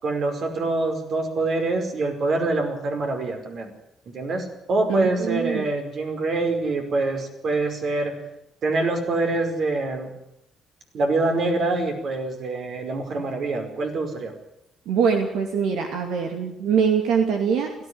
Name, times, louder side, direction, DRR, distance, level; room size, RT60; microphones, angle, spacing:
voice 1, 0.0-3.7 4.1-8.1 8.6-10.1 10.9-14.3, right 2 dB, 60° right, 4 dB, 5.2 m, -25 dB
voice 2, 4.9-5.6 14.9-17.7, right 6 dB, 90° right, 3 dB, 2.6 m, -23 dB
18.0 x 15.5 x 9.8 m, 0.82 s
cardioid pair, 90°, 0 cm